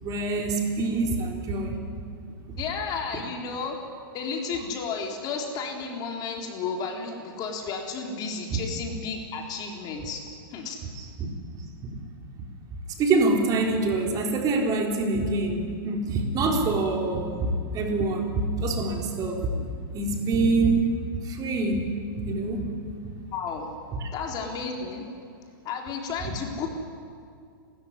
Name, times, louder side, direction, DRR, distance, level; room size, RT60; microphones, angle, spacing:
voice 1, 0.0-1.8 8.5-8.6 11.0-11.1 11.8-11.9 12.4-12.5 13.0-19.5 19.9-21.9 22.2-22.7 24.0-24.1, right 3 dB, 30° right, 2 dB, 3.9 m, -25 dB
voice 2, 2.6-3.8 4.1-10.2 10.5-10.8 23.3-23.7 24.1-25.1 25.6-26.7, left 5 dB, 35° left, 1 dB, 4.2 m, -32 dB
30.0 x 13.5 x 9.8 m, 2.3 s
hypercardioid pair, 120°, 12 cm